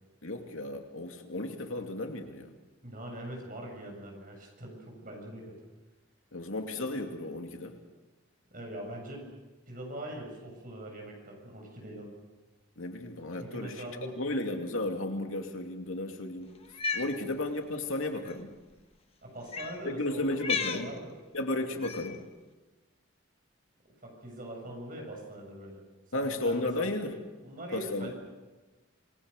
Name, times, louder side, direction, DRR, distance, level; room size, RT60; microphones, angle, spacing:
voice 1, 0.2-2.5 6.3-7.8 12.8-13.9 14.2-16.5 16.9-18.6 19.8-20.9 21.3-22.2 26.1-27.1 27.7-28.1, left 2 dB, 75° left, 4 dB, 2.7 m, -34 dB
voice 2, 2.8-5.6 8.5-9.3 9.7-12.1 13.4-14.2 19.2-20.2 20.5-21.1 21.6-21.7 24.0-25.8 26.1-26.9 27.4-28.1, right 1 dB, 40° right, 1 dB, 7.5 m, -42 dB
Cat, 16.6-17.1 18.2-18.3 19.5-19.8 20.4-20.9 21.8-22.2, left 5 dB, 30° left, 1.3 m, -33 dB
27.0 x 20.5 x 6.7 m, 1.2 s
head